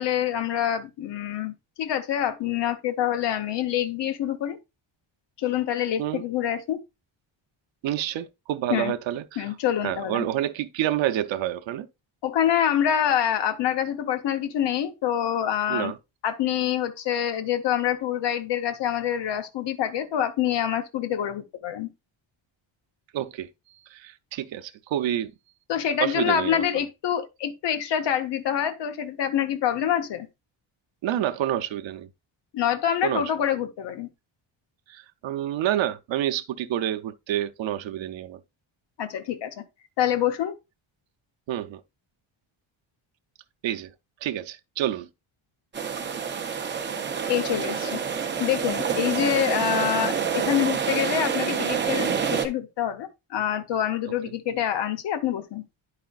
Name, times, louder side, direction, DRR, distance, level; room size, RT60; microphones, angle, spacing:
voice 1, 0.0-1.5 1.8-4.6 5.4-6.8 8.7-8.9 9.4-10.2 12.2-15.9 16.2-21.9 25.7-30.3 32.5-34.1 39.0-39.5 40.0-40.5 47.3-48.0 48.4-55.6, left 10 dB, 60° left, 0.8 m, -26 dB
voice 2, 7.8-9.5 9.8-11.9 15.7-16.0 23.1-25.3 26.0-26.8 31.0-32.1 33.0-33.2 34.9-38.4 41.5-41.8 43.6-43.9 44.2-45.1, right 12 dB, 70° right, 0.6 m, -28 dB
sound 1, 45.7-52.5, right 6 dB, 25° right, 0.5 m, -27 dB
10.0 x 5.0 x 2.3 m
wide cardioid pair, 175°, 48 cm